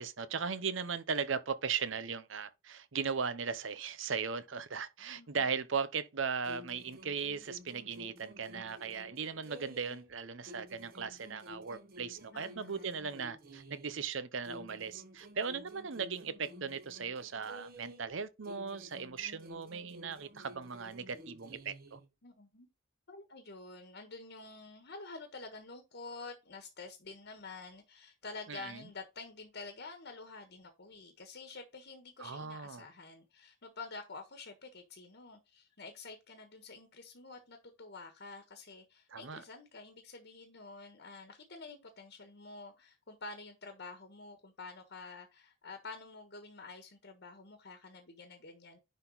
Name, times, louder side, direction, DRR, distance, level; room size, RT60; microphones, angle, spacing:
voice 1, 0.0-22.0 28.5-28.8 32.2-32.9 39.1-39.4, right 6 dB, 65° right, 0.8 m, -38 dB
voice 2, 5.1-5.4 12.3-12.9 22.2-22.7 23.1-48.8, left 3 dB, 60° left, 1.4 m, -49 dB
sound 1, 6.4-10.1 10.4-14.1 14.4-18.1 18.4-22.1, equal, 50° right, 1.7 m, -52 dB
10.5 x 4.0 x 4.0 m
head